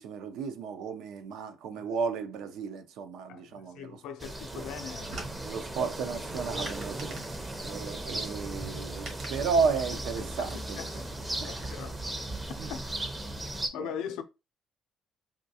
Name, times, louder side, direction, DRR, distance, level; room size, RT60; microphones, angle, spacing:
voice 1, 0.0-4.0 4.5-4.7 5.4-7.2 7.6-10.8 11.4-11.6 12.6-12.7 13.8-13.9, right 5 dB, 75° right, 0.4 m, -33 dB
voice 2, 3.3-5.2 10.2-11.1 11.5-12.0 12.7-12.8 13.7-14.2, left 8 dB, 85° left, 0.5 m, -40 dB
sound 1, 4.2-13.7, right 1 dB, 15° right, 0.5 m, -37 dB
sound 2, 4.6-11.9, right 2 dB, 60° right, 1.3 m, -49 dB
3.6 x 2.3 x 2.7 m
cardioid pair, 125°, 0 cm